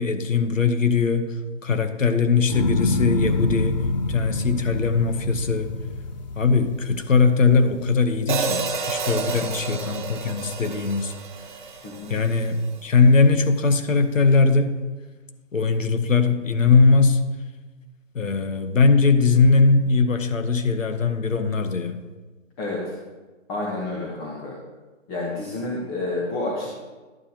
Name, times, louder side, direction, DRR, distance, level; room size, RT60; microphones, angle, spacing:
voice 1, 0.0-1.3 1.6-5.7 6.4-11.1 12.1-14.7 15.5-17.2 18.1-22.0, left 4 dB, 90° left, 8 dB, 1.0 m, -20 dB
sound 1, 2.5-8.8 9.3-9.8, left 3 dB, 35° left, 0.5 m, -27 dB
Hi-hat, 8.3-12.5, right 5 dB, 40° right, 0.7 m, -30 dB
voice 2, 22.6-22.9 23.5-24.5 25.1-26.7, left 2 dB, 15° left, -3 dB, 1.1 m, -29 dB
11.0 x 8.8 x 2.9 m, 1.2 s
figure-of-eight pair, 145°, 38 cm